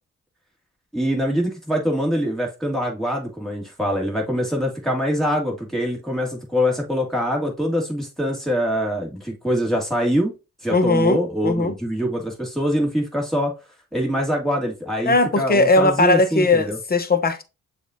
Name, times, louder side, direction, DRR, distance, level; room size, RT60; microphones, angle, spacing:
voice 1, 0.9-10.3 10.6-13.5 13.9-16.8, equal, ahead, 1.9 m, -24 dB
voice 2, 10.7-11.7 15.0-17.4, left 2 dB, 30° left, 0.9 m, -18 dB
7.0 x 2.5 x 2.7 m
supercardioid pair, 55°, 32 cm